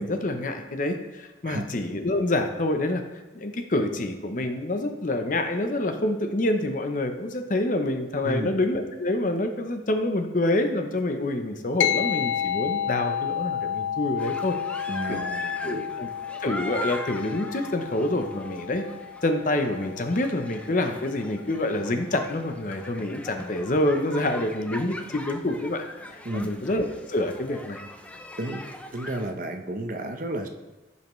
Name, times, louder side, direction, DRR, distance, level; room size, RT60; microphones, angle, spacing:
voice 1, 0.0-3.0 3.3-14.6 15.1-15.2 15.7-16.1 16.4-18.8 19.2-27.8, left 1 dB, 45° left, 6 dB, 0.7 m, -27 dB
sound 1, 11.8-21.5, left 10 dB, 80° left, 0.3 m, -31 dB
sound 2, 14.2-29.3, left 1 dB, 5° left, 0.4 m, -40 dB
voice 2, 14.9-15.8 26.2-26.5 28.4-28.6 28.9-30.5, right 1 dB, 45° right, 4 dB, 0.8 m, -32 dB
14.5 x 5.6 x 3.1 m, 1.1 s
head